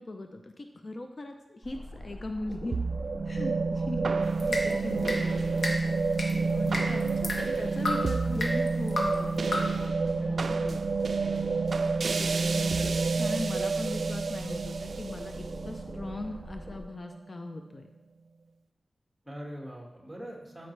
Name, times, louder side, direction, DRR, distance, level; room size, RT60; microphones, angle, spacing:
voice 1, 0.0-2.8 3.3-5.8 6.4-10.8 12.0-17.9, left 2 dB, 45° left, 5 dB, 0.6 m, -39 dB
sound 1, 1.6-16.8, equal, 25° left, 2.5 m, -43 dB
sound 2, 2.7-17.2, right 4 dB, 70° right, 0.3 m, -29 dB
sound 3, 4.2-9.9, left 1 dB, 70° left, 1.5 m, -35 dB
voice 2, 6.6-7.6 19.2-20.7, equal, 10° right, -2 dB, 1.9 m, -43 dB
13.0 x 5.5 x 3.3 m, 0.92 s
wide cardioid pair, 95°, 0 cm